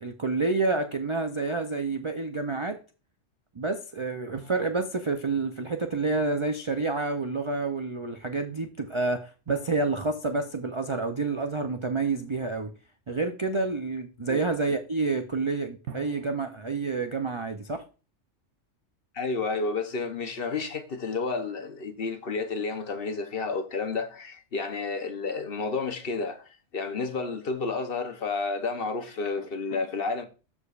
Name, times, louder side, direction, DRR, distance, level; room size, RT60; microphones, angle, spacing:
voice 1, 0.0-2.8 3.5-12.7 13.1-17.8, right 3 dB, 45° right, 0.4 m, -29 dB
sound 1, 15.9-17.8, right 6 dB, 65° right, 1.0 m, -49 dB
voice 2, 19.1-30.3, left 4 dB, 50° left, 0.9 m, -31 dB
13.0 x 4.9 x 2.4 m
omnidirectional pair, 1.3 m